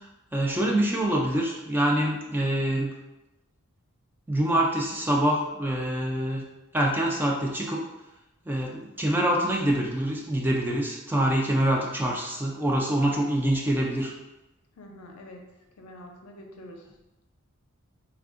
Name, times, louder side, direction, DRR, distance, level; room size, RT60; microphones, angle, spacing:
voice 1, 0.3-2.9 4.3-6.4 6.7-7.8 8.5-14.1, right 1 dB, 10° right, -1 dB, 0.3 m, -25 dB
voice 2, 14.8-16.9, left 1 dB, 75° left, 2 dB, 0.5 m, -46 dB
3.4 x 2.6 x 2.4 m, 0.98 s
head